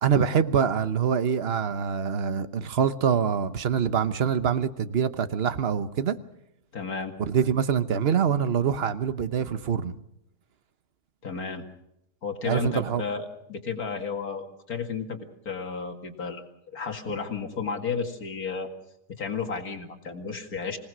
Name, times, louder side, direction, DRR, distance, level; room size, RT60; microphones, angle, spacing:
voice 1, 0.0-6.2 7.3-10.0 12.4-13.0, right 7 dB, 45° right, 1.1 m, -25 dB
voice 2, 6.7-7.1 11.2-11.7 12.2-15.2 15.5-16.4 16.7-18.7 19.1-20.8, left 5 dB, 75° left, 2.6 m, -32 dB
26.0 x 18.0 x 6.3 m
omnidirectional pair, 1.6 m